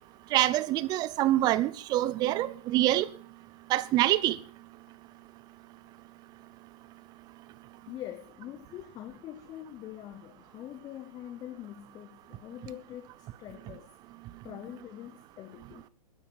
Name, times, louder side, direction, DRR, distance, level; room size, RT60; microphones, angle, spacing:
voice 1, 0.3-3.1 3.7-4.4, right 15 dB, 20° right, 0.7 m, -25 dB
voice 2, 7.9-13.9 14.4-15.9, left 12 dB, 20° left, 0.9 m, -44 dB
20.5 x 10.5 x 5.3 m
hypercardioid pair, 135°, 19 cm